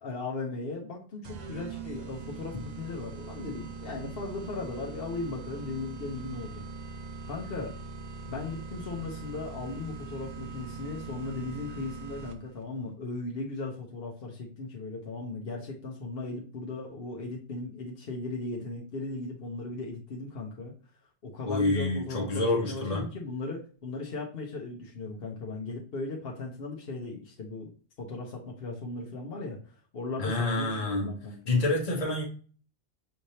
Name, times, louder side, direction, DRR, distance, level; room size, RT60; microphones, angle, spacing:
voice 1, 0.0-6.6 7.2-7.7 8.3-20.7 21.2-27.7 28.0-29.6 29.9-31.5, left 3 dB, 60° left, -1 dB, 1.0 m, -37 dB
sound 1, 1.2-12.6, right 4 dB, 50° right, 0.5 m, -42 dB
voice 2, 21.5-23.1 30.2-31.2 31.5-32.2, left 2 dB, 35° left, -2 dB, 1.1 m, -27 dB
5.6 x 3.2 x 2.7 m, 0.40 s
omnidirectional pair, 1.2 m